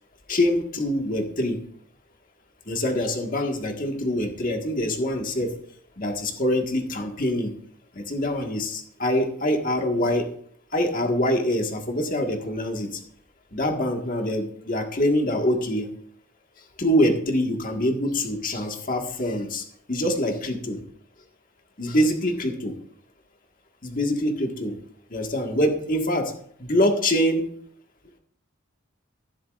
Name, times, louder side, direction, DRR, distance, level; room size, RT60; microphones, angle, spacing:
voice 1, 0.3-1.6 2.7-5.5 6.0-7.5 8.0-10.3 10.7-12.9 13.5-15.9 16.8-20.8 21.8-22.7 23.8-24.7 25.1-26.3 26.6-27.5, left 1 dB, 40° left, 2 dB, 1.7 m, -24 dB
15.0 x 11.0 x 2.5 m, 0.64 s
head